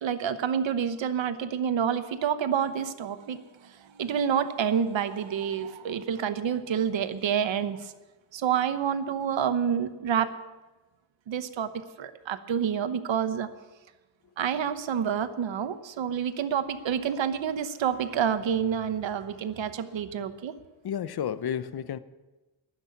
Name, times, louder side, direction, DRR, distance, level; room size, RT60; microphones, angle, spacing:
voice 1, 0.0-7.9 8.3-10.3 11.3-11.7 12.0-13.5 14.4-20.5, right 8 dB, 70° right, 1.0 m, -28 dB
voice 2, 20.8-22.0, left 9 dB, 55° left, 0.7 m, -31 dB
12.0 x 10.5 x 7.0 m
wide cardioid pair, 115°, 46 cm